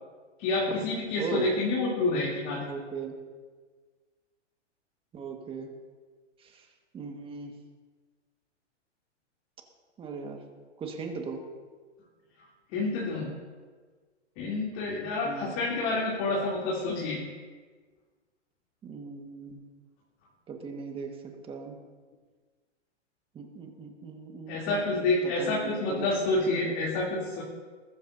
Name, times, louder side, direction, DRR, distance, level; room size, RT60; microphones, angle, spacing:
voice 1, 0.4-2.7 12.7-13.3 14.4-17.2 24.5-27.4, left 2 dB, 30° left, -4 dB, 3.0 m, -28 dB
voice 2, 1.2-1.5 2.6-3.2 5.1-5.7 6.4-6.7 6.9-7.5 10.0-10.4 10.8-11.4 15.2-15.5 18.8-19.6 20.5-21.8 23.3-26.1, right 5 dB, 15° right, 3 dB, 1.6 m, -38 dB
20.5 x 13.5 x 2.7 m, 1.5 s
hypercardioid pair, 145°, 36 cm